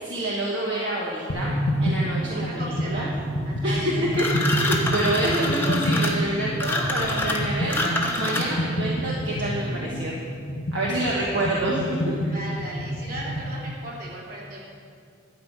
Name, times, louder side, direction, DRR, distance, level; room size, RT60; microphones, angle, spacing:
voice 1, 0.0-1.5 1.8-3.1 3.6-10.1 10.7-11.8 12.2-12.3, right 1 dB, 60° right, -4 dB, 1.4 m, -27 dB
sound 1, 1.3-13.6, equal, 80° left, 1.8 m, -28 dB
sound 2, 2.0-10.0, right 2 dB, 25° right, 1.0 m, -42 dB
voice 2, 2.2-3.1 3.4-4.2 10.9-11.6 12.2-14.6, right 1 dB, 45° right, -5 dB, 3.0 m, -37 dB
sound 3, 4.1-8.7, left 2 dB, 10° left, 1.0 m, -27 dB
12.0 x 5.5 x 8.6 m, 2.3 s
head